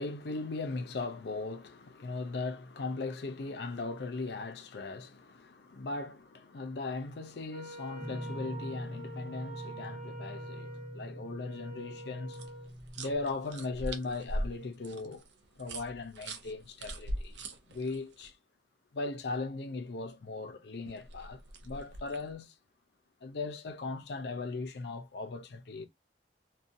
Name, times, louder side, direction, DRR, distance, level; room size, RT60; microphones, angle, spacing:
voice 1, 0.0-12.5 13.0-15.2 15.6-17.4 17.7-18.3 18.9-22.5 23.2-25.8, left 3 dB, 70° left, 0.5 m, -38 dB
Wind instrument woodwind instrument, 7.5-12.7, right 2 dB, 40° right, 0.7 m, -47 dB
Guitar, 8.0-13.3, equal, 5° left, 0.5 m, -43 dB
sound 1, 12.3-18.3 20.8-22.3, right 1 dB, 85° right, 0.6 m, -41 dB
2.6 x 2.2 x 2.5 m
head